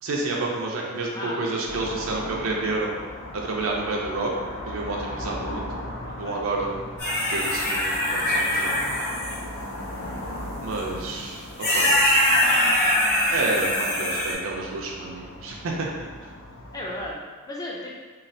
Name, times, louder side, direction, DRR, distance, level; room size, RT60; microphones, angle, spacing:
voice 1, 0.0-2.9 3.3-4.3 4.7-5.8 6.2-6.7 7.2-8.9 10.6-11.9 13.3-15.9 16.2-16.3, right 2 dB, 75° right, -1 dB, 0.4 m, -29 dB
voice 2, 1.1-1.6 6.0-6.4 16.7-17.9, left 1 dB, 20° left, -3 dB, 0.4 m, -35 dB
sound 1, 1.6-17.1, left 1 dB, 80° left, 0.5 m, -38 dB
sound 2, 7.0-9.4 10.8-10.9 11.6-14.3, left 1 dB, 45° left, 1.2 m, -22 dB
3.1 x 2.3 x 2.6 m, 1.4 s
head